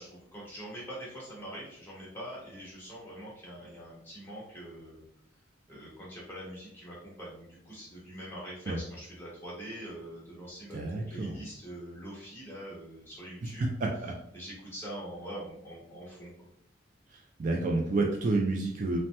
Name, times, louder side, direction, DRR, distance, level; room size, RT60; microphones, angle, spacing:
voice 1, 0.0-5.0 5.7-10.8 11.1-13.7 14.3-16.5, right 1 dB, 10° left, -7 dB, 1.1 m, -44 dB
voice 2, 10.7-11.4 13.6-14.1 17.1-19.0, right 2 dB, 40° right, 0 dB, 0.3 m, -30 dB
2.7 x 2.1 x 3.2 m, 0.72 s
head